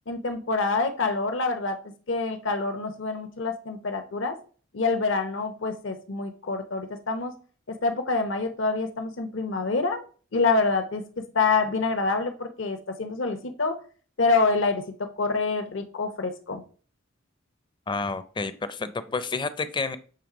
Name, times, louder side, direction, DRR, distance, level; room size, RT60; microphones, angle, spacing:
voice 1, 0.1-1.8 2.1-4.4 4.7-7.3 7.7-10.0 10.3-11.0 11.3-13.8 14.2-16.6, left 3 dB, 70° left, 7 dB, 0.8 m, -26 dB
voice 2, 17.9-20.0, left 4 dB, 25° left, 13 dB, 0.5 m, -30 dB
6.9 x 3.2 x 4.9 m, 0.40 s
head